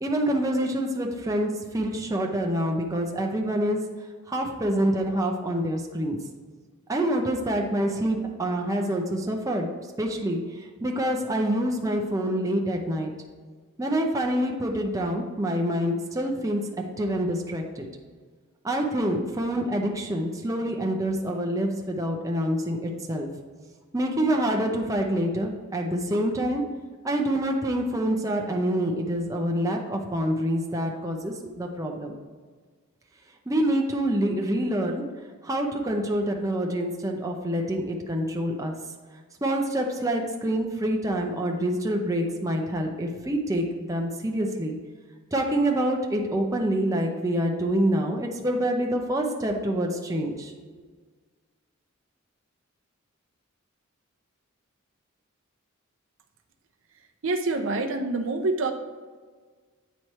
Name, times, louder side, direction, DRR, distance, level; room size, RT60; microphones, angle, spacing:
voice 1, 0.0-3.8 4.3-6.2 6.9-9.7 10.0-10.4 10.8-13.1 13.8-16.6 17.0-17.9 18.6-23.3 23.9-26.6 27.0-32.1 33.5-35.0 35.4-38.7 39.4-44.8 45.3-50.5, right 1 dB, 15° right, 1 dB, 0.6 m, -26 dB
voice 2, 57.2-58.7, right 2 dB, 65° right, 5 dB, 0.6 m, -26 dB
9.1 x 3.2 x 4.2 m, 1.5 s
head